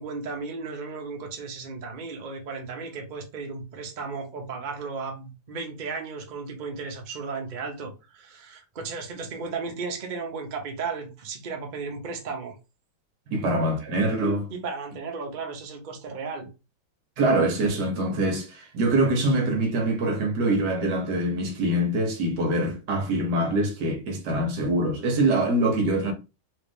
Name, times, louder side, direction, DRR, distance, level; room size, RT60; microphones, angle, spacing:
voice 1, 0.0-12.5 14.5-16.5, right 4 dB, 75° right, 0.4 m, -35 dB
voice 2, 13.3-14.5 17.2-26.1, right 1 dB, 60° right, 1.5 m, -24 dB
3.9 x 2.5 x 3.5 m
omnidirectional pair, 2.2 m